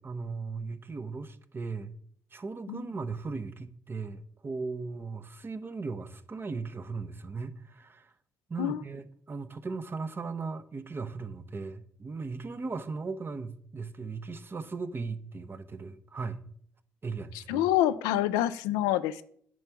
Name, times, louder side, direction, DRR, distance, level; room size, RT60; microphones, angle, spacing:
voice 1, 0.0-1.9 2.3-8.1 8.5-16.4 17.0-17.7, right 4 dB, 35° right, 11 dB, 0.7 m, -37 dB
voice 2, 17.5-19.2, left 13 dB, 85° left, 13 dB, 0.3 m, -26 dB
9.2 x 3.5 x 5.8 m, 0.62 s
hypercardioid pair, 50°, 6 cm